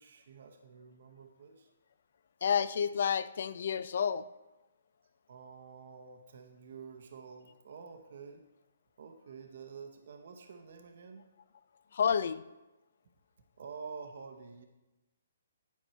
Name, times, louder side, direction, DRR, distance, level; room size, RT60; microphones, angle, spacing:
voice 1, 0.0-1.7 5.3-8.4 9.0-11.2 13.6-14.6, right 5 dB, 60° right, 5 dB, 0.8 m, -49 dB
voice 2, 2.4-4.2 11.9-12.4, left 7 dB, 60° left, 16 dB, 0.3 m, -30 dB
10.5 x 4.5 x 4.4 m, 1.0 s
hypercardioid pair, 150°, 0 cm